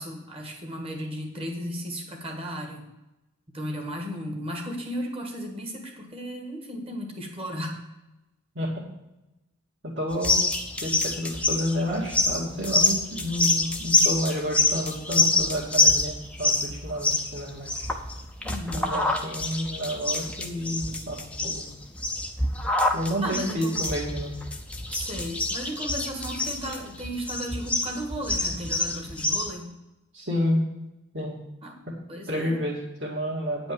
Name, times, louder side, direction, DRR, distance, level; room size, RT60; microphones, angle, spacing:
voice 1, 0.0-2.8 3.5-7.8 18.4-19.0 23.2-23.8 24.9-29.7 31.6-31.8 32.1-32.6, equal, 25° right, 3 dB, 1.7 m, -35 dB
voice 2, 8.6-8.9 9.8-10.4 10.8-17.9 18.7-21.7 22.9-24.3 30.1-30.7 31.1-31.4 31.9-32.0 32.3-33.7, equal, 50° right, -6 dB, 2.2 m, -30 dB
sound 1, 10.1-29.5, left 2 dB, 5° left, 0.7 m, -26 dB
9.6 x 5.2 x 7.8 m, 0.97 s
head